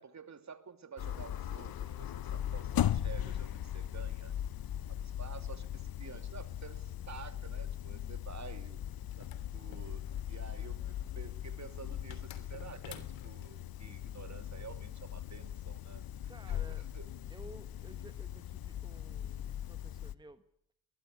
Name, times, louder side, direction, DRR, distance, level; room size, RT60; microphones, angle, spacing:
voice 1, 0.0-4.3 4.9-8.8 9.2-16.0 16.5-17.1, right 6 dB, 35° right, 10 dB, 2.8 m, -50 dB
sound 1, 1.0-20.1, left 10 dB, 50° left, 1.1 m, -39 dB
sound 2, 9.1-10.5 12.1-13.5, left 9 dB, 70° left, 3.1 m, -52 dB
voice 2, 16.3-16.9 17.3-20.4, right 2 dB, 10° right, 10 dB, 1.4 m, -54 dB
21.0 x 20.5 x 9.8 m, 0.74 s
supercardioid pair, 65°, 47 cm